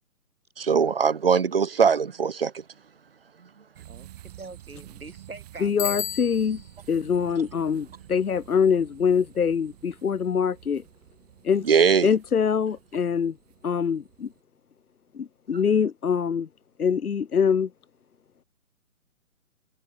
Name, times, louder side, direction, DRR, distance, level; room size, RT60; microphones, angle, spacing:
voice 1, 0.6-2.5 11.7-12.1, right 6 dB, 45° right, 0.5 m, -21 dB
sound 1, 3.7-14.4, right 14 dB, 25° right, 3.3 m, -50 dB
voice 2, 3.8-6.0, right 3 dB, 75° right, 3.7 m, -43 dB
voice 3, 5.6-6.6 6.9-10.8 11.4-11.7 12.0-13.4 13.6-14.3 15.1-16.5 16.8-17.7, left 6 dB, 85° left, 0.7 m, -24 dB
Bicycle bell, 5.8-6.8, left 9 dB, 35° left, 1.9 m, -32 dB
figure-of-eight pair, 140°, 43 cm